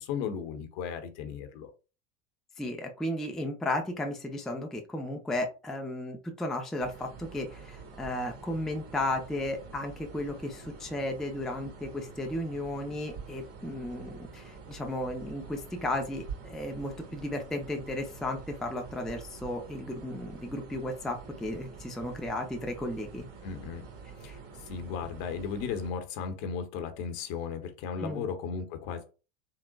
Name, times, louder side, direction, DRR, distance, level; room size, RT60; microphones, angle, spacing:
voice 1, 0.0-1.7 23.4-23.9 24.2-29.1, left 6 dB, 60° left, 7 dB, 0.8 m, -36 dB
voice 2, 2.6-23.2 24.3-24.4 28.0-28.3, left 1 dB, ahead, 3 dB, 0.4 m, -34 dB
sound 1, 6.8-25.9, right 5 dB, 40° right, 1.5 m, -47 dB
3.9 x 2.0 x 2.2 m, 0.32 s
hypercardioid pair, 95°, 37 cm